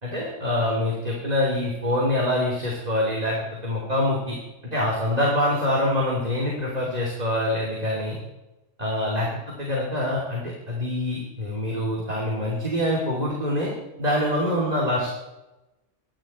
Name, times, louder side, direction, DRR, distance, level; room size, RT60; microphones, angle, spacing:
voice 1, 0.0-3.4 3.6-4.4 4.6-8.2 8.8-13.7 14.0-15.1, left 1 dB, 35° right, -3 dB, 3.2 m, -25 dB
25.0 x 11.5 x 4.5 m, 1.0 s
omnidirectional pair, 1.2 m